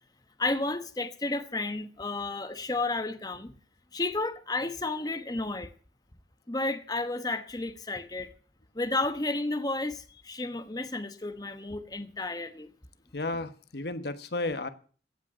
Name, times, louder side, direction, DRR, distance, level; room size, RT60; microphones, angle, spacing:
voice 1, 0.4-3.5 3.9-5.7 6.5-8.3 8.7-12.7, left 2 dB, 20° left, 1.1 m, -32 dB
voice 2, 13.1-14.7, left 2 dB, 60° left, 1.1 m, -33 dB
16.0 x 6.2 x 8.9 m
head